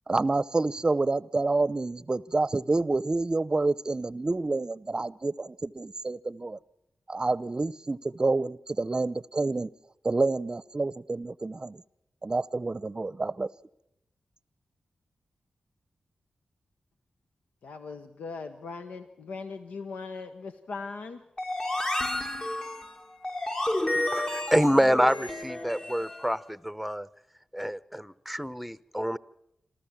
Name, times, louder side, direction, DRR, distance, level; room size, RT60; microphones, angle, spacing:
voice 1, 0.1-6.6 7.1-9.7 10.0-11.8 12.2-13.5, right 3 dB, 35° right, 20 dB, 0.7 m, -28 dB
voice 2, 17.6-21.2, left 4 dB, 85° left, 7 dB, 0.9 m, -39 dB
sound 1, 21.4-26.3, left 1 dB, 35° left, 2.0 m, -31 dB
voice 3, 24.1-27.1 27.5-29.2, equal, ahead, 16 dB, 0.8 m, -27 dB
27.5 x 13.5 x 7.4 m, 0.82 s
cardioid pair, 40°, 2 cm